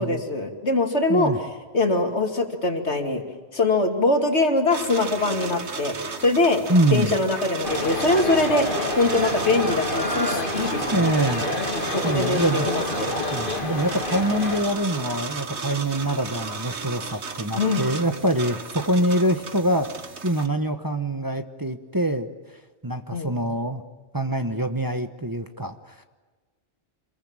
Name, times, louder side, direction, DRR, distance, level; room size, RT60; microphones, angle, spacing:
voice 1, 0.0-1.3 1.7-3.2 3.5-5.9 6.2-11.5 11.9-13.1 17.5-17.9 23.1-23.4, left 2 dB, 80° left, 4 dB, 2.8 m, -23 dB
sound 1, 4.7-20.5, right 4 dB, 80° right, 1.8 m, -34 dB
voice 2, 6.7-7.1 10.9-11.5 12.0-12.7 13.3-19.9 20.2-22.3 22.8-23.8 24.1-25.9, right 1 dB, 20° right, 7 dB, 1.2 m, -24 dB
sound 2, 7.6-14.6, left 2 dB, 50° left, 2.8 m, -28 dB
27.5 x 21.5 x 8.9 m, 1.3 s
omnidirectional pair, 1.1 m